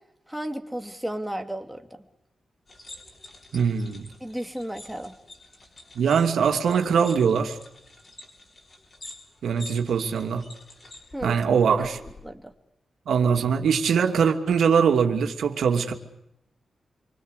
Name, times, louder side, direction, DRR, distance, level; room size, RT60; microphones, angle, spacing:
voice 1, 0.3-1.8 4.2-5.2 11.1-11.4 11.8-11.9 12.2-12.5, right 1 dB, 5° right, 5 dB, 2.7 m, -33 dB
sound 1, 2.7-12.3, left 2 dB, 40° left, 7.7 m, -47 dB
voice 2, 3.5-4.1 5.9-7.6 9.4-10.4 11.2-12.0 13.1-15.9, right 6 dB, 90° right, 4 dB, 2.8 m, -22 dB
27.5 x 24.5 x 8.3 m, 0.82 s
wide cardioid pair, 125°, 0 cm